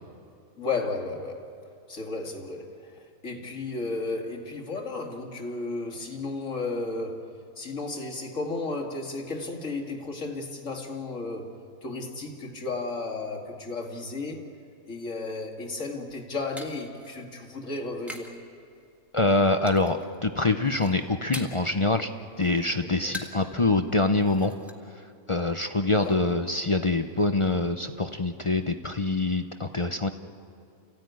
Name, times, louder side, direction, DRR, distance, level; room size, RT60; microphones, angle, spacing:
voice 1, 0.6-1.5 1.9-7.3 7.6-11.5 11.8-14.5 14.9-18.3 23.0-23.2 26.0-26.4, left 3 dB, 65° left, 2 dB, 2.6 m, -34 dB
sound 1, 15.9-18.4 18.7-19.2 19.7-20.2 20.5-21.8 22.1-23.5 23.8-23.9 24.2-24.7, left 1 dB, ahead, 1.7 m, -43 dB
voice 2, 19.1-22.1 22.4-24.5 25.3-30.1, left 2 dB, 35° left, 7 dB, 0.5 m, -25 dB
29.5 x 15.0 x 9.4 m, 2.4 s
omnidirectional pair, 1.4 m